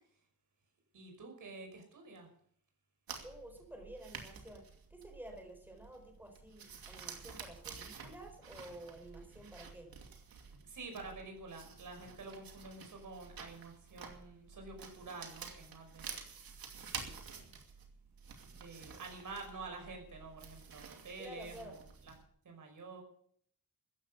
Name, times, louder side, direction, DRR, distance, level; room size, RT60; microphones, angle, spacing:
voice 1, 0.9-2.3 10.6-16.2 16.9-17.5 18.5-22.1 22.4-23.0, right 3 dB, 60° right, 3 dB, 5.7 m, -49 dB
sound 1, 3.1-22.3, right 6 dB, 85° right, 2.7 m, -50 dB
voice 2, 3.2-9.9 21.2-21.7, right 1 dB, 5° right, 4 dB, 4.4 m, -51 dB
14.5 x 10.5 x 8.1 m, 0.64 s
wide cardioid pair, 115°, 35 cm